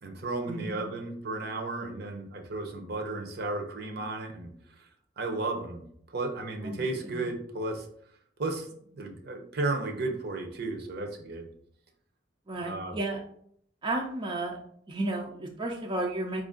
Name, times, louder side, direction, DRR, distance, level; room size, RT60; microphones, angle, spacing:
voice 1, 0.0-4.5 4.8-4.9 5.2-7.9 8.4-11.5 12.6-13.0, right 2 dB, 60° right, 4 dB, 0.7 m, -34 dB
voice 2, 6.6-7.3 12.5-13.2 13.8-14.6 14.9-16.4, right 2 dB, 25° right, 0 dB, 0.5 m, -33 dB
4.8 x 2.5 x 3.6 m, 0.67 s
head